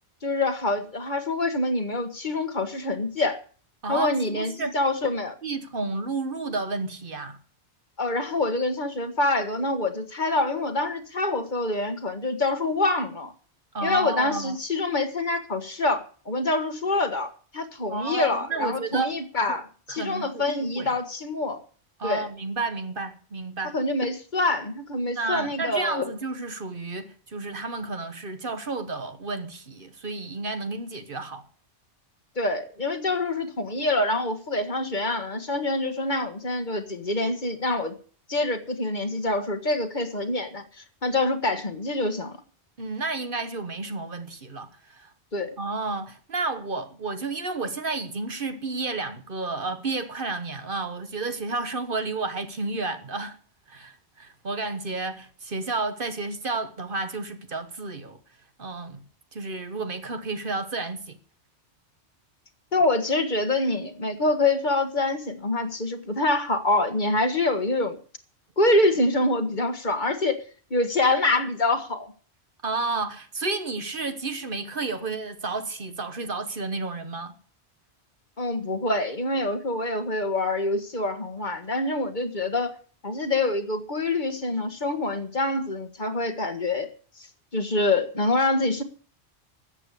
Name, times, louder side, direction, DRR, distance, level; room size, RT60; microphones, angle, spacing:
voice 1, 0.2-3.4 3.9-5.4 8.0-13.3 13.8-21.6 22.0-22.3 23.7-26.1 32.3-37.9 38.3-42.4 45.3-45.5 62.7-68.0 68.6-70.4 70.7-72.1 78.4-82.8 83.0-86.9 87.5-88.8, left 2 dB, 45° left, 1.6 m, -26 dB
voice 2, 3.8-4.7 5.4-7.4 13.7-14.6 17.9-19.1 19.5-19.6 19.9-20.9 22.0-23.8 25.0-31.5 42.8-45.1 45.6-53.4 53.7-58.2 58.6-59.0 59.3-61.2 72.6-77.3, right 3 dB, 50° right, 1.4 m, -31 dB
13.5 x 8.3 x 8.4 m
omnidirectional pair, 1.2 m